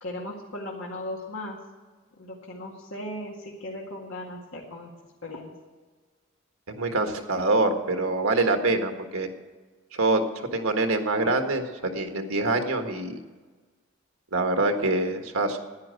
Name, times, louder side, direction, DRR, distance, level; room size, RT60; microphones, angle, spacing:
voice 1, 0.0-1.6 2.2-4.9 5.2-5.5, left 1 dB, 70° left, -3 dB, 2.0 m, -37 dB
voice 2, 6.7-9.3 9.9-10.2 10.5-11.7 11.9-13.2 14.3-15.6, right 2 dB, 90° right, 5 dB, 1.6 m, -25 dB
10.5 x 10.0 x 7.8 m, 1.4 s
head